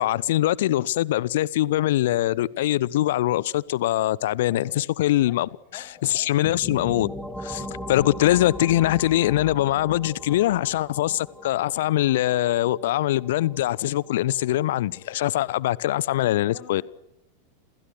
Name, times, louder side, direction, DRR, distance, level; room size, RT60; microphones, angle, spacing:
voice 1, 0.0-7.1 7.4-16.8, left 14 dB, 55° left, 1.0 m, -23 dB
voice 2, 4.5-5.0 5.2-6.4 16.1-16.8, left 10 dB, 40° left, 6.1 m, -48 dB
sound 1, 6.4-16.0, equal, ahead, 3.2 m, -40 dB
29.5 x 28.5 x 6.4 m
figure-of-eight pair, 90°, 0 cm